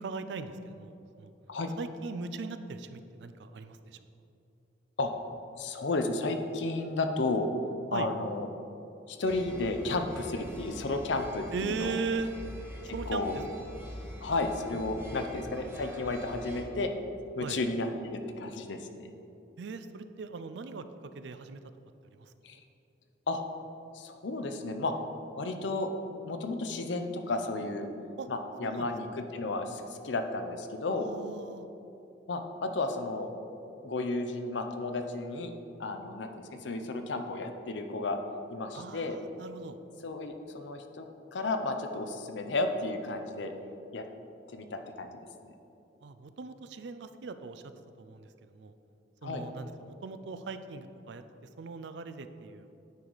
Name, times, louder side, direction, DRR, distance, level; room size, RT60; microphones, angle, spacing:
voice 1, 0.0-1.3 1.8-4.0 7.9-8.1 11.5-12.3 12.9-13.7 17.4-17.6 19.6-20.9 21.1-21.6 22.1-22.3 28.2-28.3 28.6-28.9 30.9-31.7 38.7-39.8 46.0-47.6 48.0-48.7 49.2-51.2 51.6-52.7, right 4 dB, 65° right, 11 dB, 0.4 m, -39 dB
voice 2, 5.6-7.5 7.9-8.5 9.1-12.0 13.1-13.4 14.2-16.9 17.4-19.1 22.4-22.6 23.3-23.4 23.9-24.9 25.4-25.9 26.2-27.9 28.3-31.1 32.3-33.3 33.8-35.5 35.8-38.2 38.5-39.2 40.0-43.5 43.9-44.0 44.5-45.2 49.2-49.4, left 2 dB, 75° left, 6 dB, 0.6 m, -33 dB
sound 1, 9.2-16.6, equal, 15° right, 1.3 m, -45 dB
9.4 x 4.7 x 4.0 m, 2.9 s
head